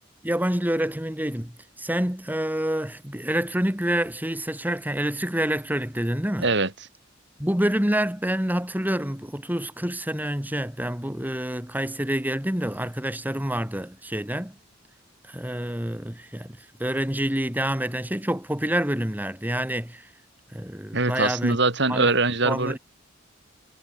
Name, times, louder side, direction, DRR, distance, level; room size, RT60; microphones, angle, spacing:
voice 1, 0.2-6.5 7.4-14.6 15.3-20.0 20.5-21.6 21.9-22.1 22.4-22.8, right 1 dB, 10° right, 2.2 m, -27 dB
voice 2, 20.9-22.8, right 3 dB, 65° right, 4.8 m, -22 dB
head